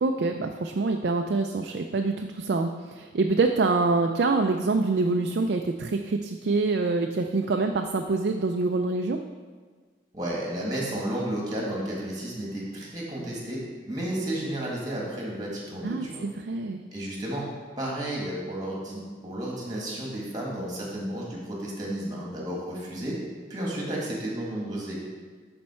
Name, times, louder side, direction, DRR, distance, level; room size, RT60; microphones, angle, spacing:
voice 1, 0.0-9.2 15.8-16.8, right 3 dB, 55° right, 4 dB, 0.4 m, -25 dB
voice 2, 10.1-16.2 16.9-17.5 17.8-23.2 23.5-24.9, right 1 dB, 20° right, -3 dB, 1.8 m, -32 dB
11.5 x 4.4 x 4.3 m, 1.5 s
head